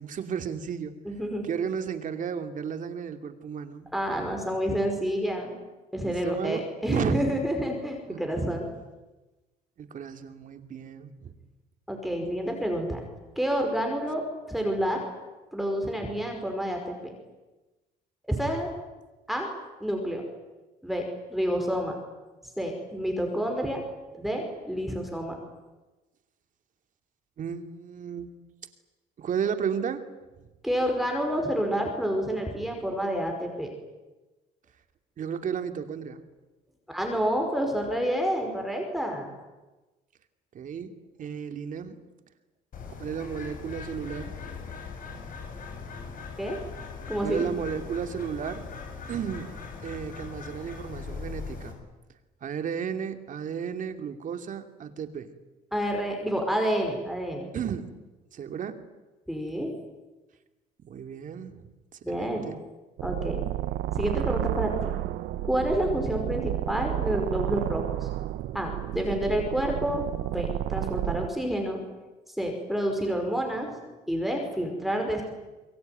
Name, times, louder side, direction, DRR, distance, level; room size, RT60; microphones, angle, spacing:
voice 1, 0.0-0.9 1.4-3.9 6.0-7.2 8.1-8.2 9.8-11.3 27.4-28.3 29.2-30.0 35.2-36.3 40.5-40.9 41.2-42.0 43.0-44.4 47.2-48.6 49.1-49.5 49.8-51.8 52.4-55.3 57.5-57.9 58.3-58.8 60.9-61.6 61.9-62.5, right 7 dB, 50° right, 8 dB, 2.7 m, -33 dB
voice 2, 1.1-1.5 3.9-5.6 5.9-8.7 11.9-13.0 13.4-14.2 14.5-15.1 15.5-17.1 18.3-18.7 19.3-19.5 19.8-20.2 20.8-21.0 21.3-22.0 22.6-23.8 24.1-25.3 30.6-33.7 36.9-39.3 46.4-46.6 47.1-47.5 55.7-57.4 59.3-59.7 62.0-62.5 63.0-63.4 63.9-64.9 65.4-68.1 68.5-71.8 72.4-75.2, equal, ahead, 2 dB, 5.4 m, -29 dB
Bird, 42.7-51.7, left 5 dB, 55° left, 6.6 m, -40 dB
sound 1, 63.0-71.3, right 15 dB, 85° right, 1.0 m, -31 dB
27.0 x 22.5 x 9.4 m, 1.1 s
cardioid pair, 110°, 17 cm